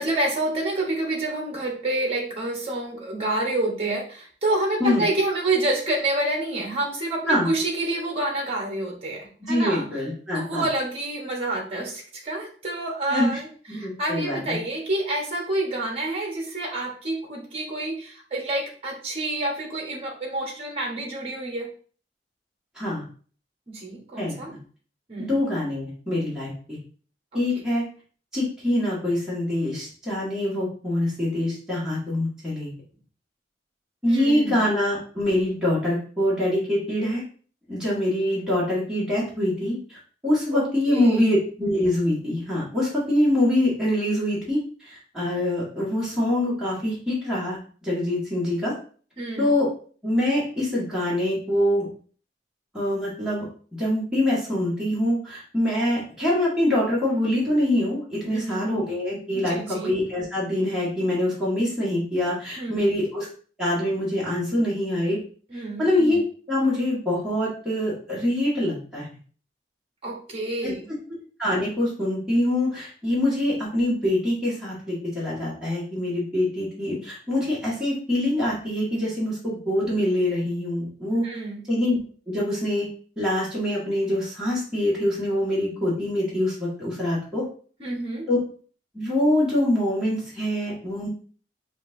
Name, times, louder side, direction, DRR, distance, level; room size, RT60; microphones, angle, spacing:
voice 1, 0.0-9.9 10.3-13.5 13.7-21.7 23.7-24.5 25.1-25.3 34.1-34.6 40.5-41.2 49.2-49.5 58.3-58.6 59.3-59.9 62.6-62.8 65.5-65.9 70.0-70.8 81.2-81.6 87.8-88.3, right 2 dB, 35° right, 0 dB, 1.2 m, -28 dB
voice 2, 9.4-10.6 13.1-13.4 13.7-14.6 22.7-23.0 24.2-24.6 25.2-26.8 27.3-27.8 28.3-32.7 34.0-37.2 37.7-40.0 40.2-48.7 49.4-49.7 50.0-51.9 52.7-53.4 53.8-63.3 63.6-65.2 65.5-66.2 66.5-69.1 70.6-70.7 71.4-81.3 81.7-82.0 82.3-82.9 83.2-87.4 88.3-88.4 88.9-91.1, left 1 dB, 5° right, -8 dB, 1.7 m, -24 dB
6.6 x 2.5 x 2.6 m, 0.43 s
head